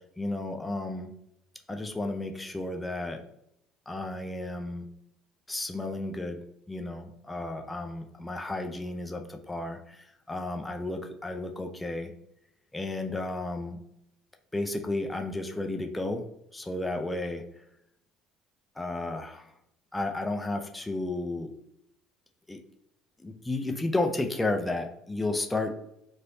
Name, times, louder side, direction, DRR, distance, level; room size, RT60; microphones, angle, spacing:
voice 1, 0.2-1.1 1.7-3.2 3.9-4.9 5.5-6.4 6.7-12.1 12.7-13.8 14.5-16.2 16.5-17.4 18.8-19.5 19.9-21.5 22.5-22.6 23.2-25.7, left 2 dB, 10° left, 4 dB, 0.4 m, -32 dB
3.1 x 2.7 x 2.7 m, 0.78 s
supercardioid pair, 80°, 0 cm